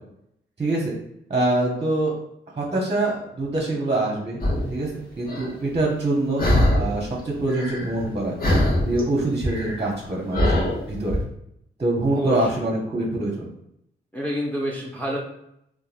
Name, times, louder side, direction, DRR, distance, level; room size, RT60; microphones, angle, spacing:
voice 1, 0.6-0.9 1.3-2.1 2.6-4.4 4.7-4.9 5.2-6.4 6.7-8.3 8.8-11.2 11.8-13.5, right 2 dB, 30° right, -2 dB, 0.8 m, -24 dB
sound 1, 4.4-4.7 5.3-5.5 6.4-7.0 7.3-8.1 8.4-11.2, left 1 dB, 45° left, 1.0 m, -22 dB
voice 2, 14.1-15.2, equal, 5° left, -3 dB, 0.7 m, -27 dB
2.9 x 2.2 x 2.4 m, 0.76 s
supercardioid pair, 45°, 21 cm